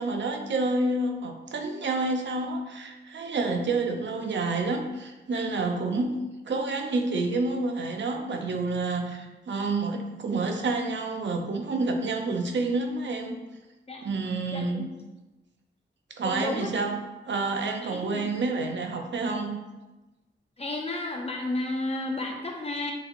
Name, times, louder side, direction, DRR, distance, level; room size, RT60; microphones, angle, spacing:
voice 1, 0.0-6.2 6.5-13.4 14.0-14.9 16.1-19.6, right 3 dB, 70° right, 4 dB, 0.6 m, -29 dB
voice 2, 14.5-14.9 16.2-16.7 17.8-18.3 20.6-22.9, left 2 dB, 30° left, 1 dB, 0.6 m, -32 dB
7.2 x 2.8 x 2.6 m, 1.1 s
wide cardioid pair, 150°, 20 cm